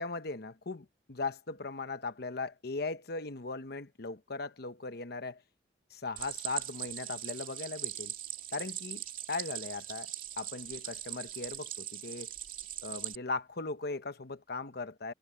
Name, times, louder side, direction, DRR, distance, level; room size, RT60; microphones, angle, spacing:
voice 1, 0.0-5.4 5.9-8.1 8.5-10.1 10.4-12.3 12.8-15.1, left 3 dB, 60° left, 1.0 m, -38 dB
Stream, 6.2-13.2, right 11 dB, 50° right, 2.7 m, -40 dB
head